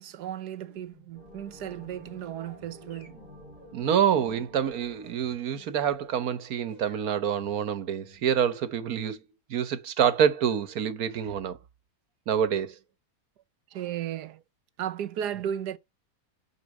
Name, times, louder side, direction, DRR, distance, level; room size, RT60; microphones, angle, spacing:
voice 1, 0.0-3.2 13.7-14.4 14.8-15.8, right 10 dB, 80° right, 1.4 m, -35 dB
sound 1, 0.6-6.4 6.7-8.5, left 2 dB, 70° left, 3.7 m, -56 dB
sound 2, 1.1-6.5, left 1 dB, 30° left, 3.7 m, -52 dB
voice 2, 3.7-9.2 9.5-11.6 12.3-12.7, right 8 dB, 60° right, 1.5 m, -26 dB
8.4 x 4.9 x 7.5 m
omnidirectional pair, 1.8 m